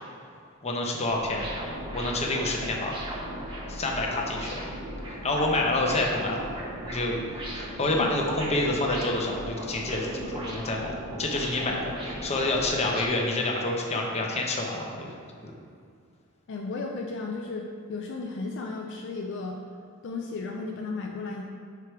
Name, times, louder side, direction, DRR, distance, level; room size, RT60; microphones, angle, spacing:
voice 1, 0.6-1.6 1.9-3.0 3.7-4.6 5.2-6.5 6.8-15.1, left 2 dB, 30° left, 0 dB, 0.8 m, -28 dB
sound 1, 1.0-13.1, equal, 25° right, 1.0 m, -37 dB
voice 2, 16.5-19.6 20.0-21.4, left 3 dB, 60° left, 1 dB, 0.4 m, -34 dB
4.8 x 4.7 x 4.7 m, 2.4 s
head